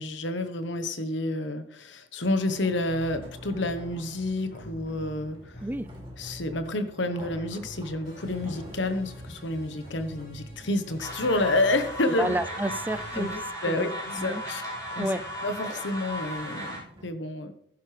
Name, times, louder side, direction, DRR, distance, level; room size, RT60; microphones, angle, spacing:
voice 1, 0.0-5.5 6.2-12.3 13.1-13.3 13.6-14.6 15.0-15.1 15.4-16.7 17.0-17.6, left 2 dB, 70° left, 9 dB, 1.1 m, -29 dB
sound 1, 2.2-17.1, right 1 dB, 25° right, 2.7 m, -49 dB
sound 2, 2.9-4.0 4.5-6.9 7.2-13.5, equal, 50° left, 5.6 m, -45 dB
sound 3, 11.0-16.8, equal, 20° left, 4.6 m, -36 dB
voice 2, 12.2-14.4 15.0-15.2, right 1 dB, 10° right, 12 dB, 0.4 m, -31 dB
14.5 x 11.0 x 3.4 m, 0.70 s
head